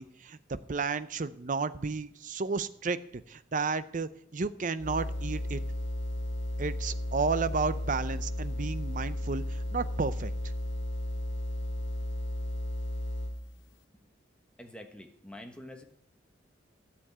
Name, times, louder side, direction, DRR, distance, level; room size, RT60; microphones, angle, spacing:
voice 1, 0.0-5.6 6.6-10.3, right 4 dB, 45° right, 14 dB, 0.6 m, -32 dB
sound 1, 4.8-13.5, left 1 dB, 80° left, 0.9 m, -34 dB
voice 2, 14.6-15.8, left 1 dB, 5° left, 4 dB, 1.2 m, -46 dB
13.0 x 7.1 x 8.6 m, 0.71 s
head